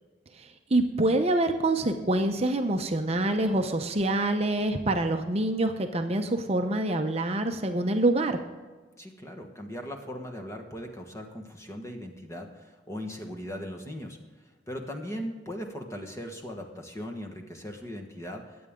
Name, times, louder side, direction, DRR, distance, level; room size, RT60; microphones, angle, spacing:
voice 1, 0.4-8.4, right 2 dB, 35° right, 5 dB, 0.7 m, -26 dB
voice 2, 9.0-14.2 14.7-18.7, equal, 15° left, 3 dB, 1.4 m, -39 dB
22.0 x 8.7 x 3.7 m, 1.3 s
head